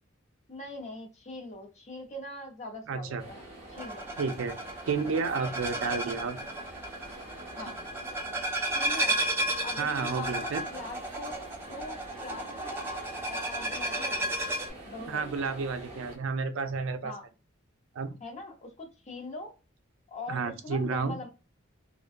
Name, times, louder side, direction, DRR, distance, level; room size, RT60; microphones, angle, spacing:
voice 1, 0.5-3.4 3.7-4.1 5.7-6.0 7.6-7.8 8.7-9.2 9.6-11.4 11.7-12.8 13.3-14.3 14.9-15.4 17.0-17.2 18.2-19.5 20.1-21.3, left 2 dB, 35° left, 0.6 m, -42 dB
voice 2, 2.9-3.2 4.2-4.6 4.9-6.4 9.8-10.6 15.1-17.1 18.0-18.1 20.3-21.2, right 4 dB, 75° right, 0.4 m, -31 dB
sound 1, 3.2-16.2, right 2 dB, 30° right, 0.9 m, -45 dB
sound 2, 3.8-14.7, right 1 dB, 10° right, 0.4 m, -33 dB
2.5 x 2.2 x 2.5 m
head